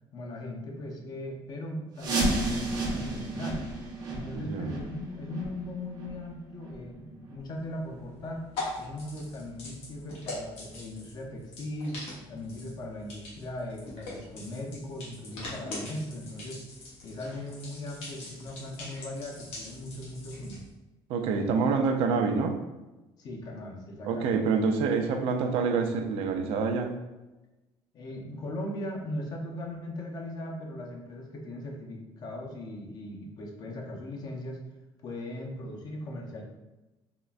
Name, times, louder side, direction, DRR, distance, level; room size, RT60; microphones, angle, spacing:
voice 1, 0.1-3.7 4.1-8.4 8.8-12.0 12.3-16.6 17.0-20.6 23.2-24.4 27.9-34.6 35.0-36.4, left 1 dB, 40° left, 1 dB, 0.6 m, -38 dB
sound 1, 2.0-7.6 7.9-8.0 8.6-8.7 9.3-9.4 9.9-10.0, right 2 dB, 45° right, 0.7 m, -33 dB
voice 2, 4.3-4.7 21.1-22.6 24.0-27.0, right 5 dB, 75° right, 5 dB, 0.4 m, -27 dB
sound 2, 7.4-20.7, left 2 dB, 90° left, 1.1 m, -43 dB
3.6 x 2.1 x 2.4 m, 1.1 s
cardioid pair, 145°, 10 cm